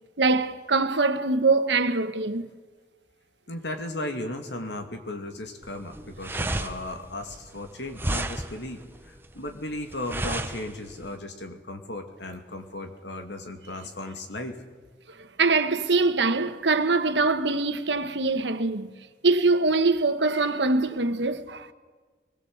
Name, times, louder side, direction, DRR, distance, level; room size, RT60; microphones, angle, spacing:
voice 1, 0.2-2.5 15.4-18.9 19.2-21.7, right 3 dB, 85° right, 1.4 m, -23 dB
voice 2, 3.5-14.6, left 1 dB, 85° left, 2.7 m, -36 dB
sound 1, 5.6-11.1, right 1 dB, 10° right, 1.1 m, -32 dB
23.0 x 21.0 x 8.0 m
head